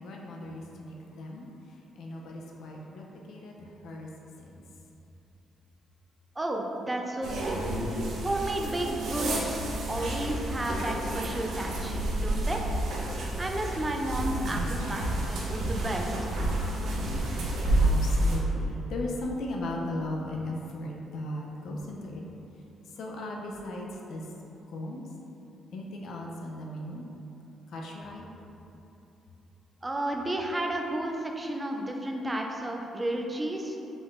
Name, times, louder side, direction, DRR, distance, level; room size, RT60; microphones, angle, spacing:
voice 1, 0.0-4.1 4.4-4.6 17.8-22.2 23.0-24.3 24.7-25.0 25.7-27.0 27.7-28.3, left 1 dB, 70° left, -1 dB, 0.5 m, -37 dB
voice 2, 6.4-7.6 8.2-9.6 9.9-12.6 13.4-16.0 29.8-33.8, right 1 dB, 20° right, 1 dB, 0.5 m, -32 dB
sound 1, 7.2-18.4, right 1 dB, 75° right, 0.7 m, -30 dB
4.8 x 3.6 x 2.5 m, 2.8 s
cardioid pair, 90°, 0 cm